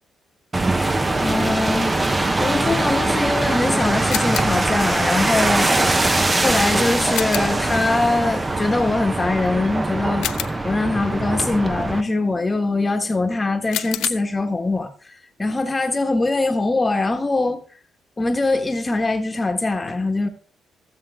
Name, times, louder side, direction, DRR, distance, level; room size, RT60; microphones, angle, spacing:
sound 1, 0.5-12.0, right 2 dB, 20° right, 0.8 m, -22 dB
voice 1, 1.2-1.9 2.4-5.9 6.3-10.3 10.6-17.6 18.2-20.3, left 2 dB, 20° left, 1.4 m, -22 dB
sound 2, 4.1-4.7 7.1-7.7 10.2-10.9 13.7-14.1, left 13 dB, 85° left, 0.6 m, -29 dB
15.5 x 7.5 x 3.6 m
cardioid pair, 90°, 0 cm